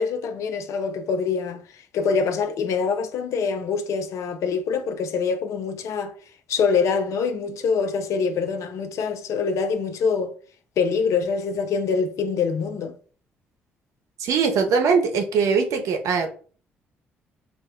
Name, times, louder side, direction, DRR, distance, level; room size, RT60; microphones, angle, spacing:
voice 1, 0.0-1.6 1.9-6.1 6.5-10.3 10.8-12.9, left 5 dB, 60° left, 0.4 m, -24 dB
voice 2, 14.2-16.3, right 5 dB, 65° right, 0.6 m, -21 dB
2.4 x 2.1 x 3.5 m
hypercardioid pair, 45°, 6 cm